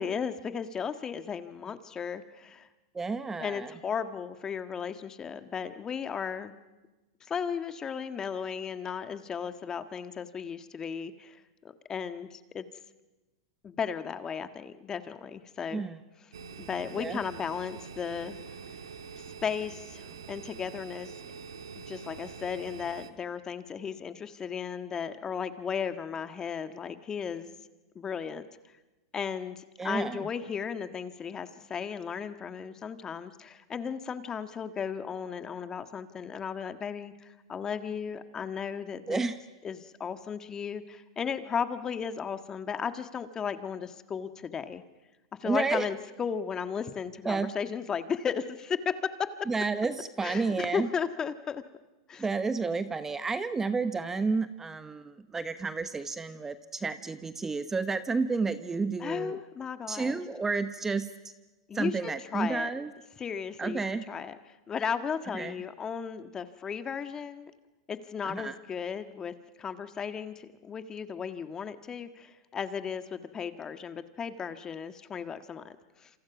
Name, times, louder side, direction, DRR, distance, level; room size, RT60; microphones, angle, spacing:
voice 1, 0.0-2.7 3.4-6.5 7.3-12.6 13.6-15.8 16.6-18.3 19.4-21.1 21.8-27.5 27.9-28.5 29.1-39.2 39.6-44.8 45.4-48.9 49.2-49.3 50.2-51.6 52.1-52.2 59.0-60.2 61.7-62.7 63.2-64.4 64.7-67.5 67.9-76.1, left 7 dB, 25° left, 10 dB, 1.6 m, -35 dB
voice 2, 2.9-3.7 15.7-16.0 16.9-17.2 29.8-30.3 39.1-39.4 45.4-45.9 47.2-47.5 49.5-50.9 52.2-59.4 59.9-61.1 61.7-62.9 63.6-64.0 65.3-65.5 68.2-68.6, right 4 dB, 15° right, 11 dB, 1.0 m, -31 dB
sound 1, 16.3-23.1, right 6 dB, 80° right, 2.1 m, -45 dB
27.5 x 27.5 x 6.1 m, 1.1 s
hypercardioid pair, 110°, 3 cm